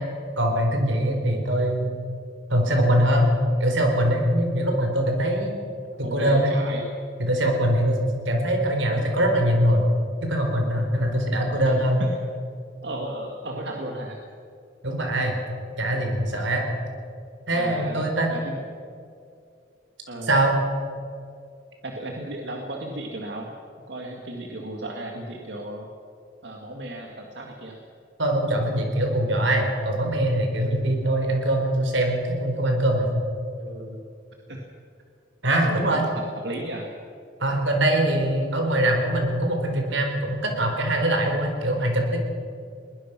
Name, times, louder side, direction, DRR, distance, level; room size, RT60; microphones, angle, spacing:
voice 1, 0.4-1.9 2.5-3.3 3.6-5.6 6.1-6.5 7.2-9.9 10.2-12.0 14.8-15.4 15.8-16.6 17.5-18.3 20.3-20.5 28.2-33.1 35.4-36.1 37.4-42.2, right 1 dB, 85° right, 3 dB, 4.3 m, -22 dB
voice 2, 6.0-6.8 11.7-12.1 12.8-14.2 15.8-15.9 17.5-18.6 20.1-20.3 21.8-23.5 23.9-25.9 26.4-27.8 33.6-34.0 34.5-34.6 35.6-36.9, right 1 dB, 65° right, 0 dB, 2.0 m, -34 dB
21.5 x 19.5 x 6.1 m, 2.4 s
head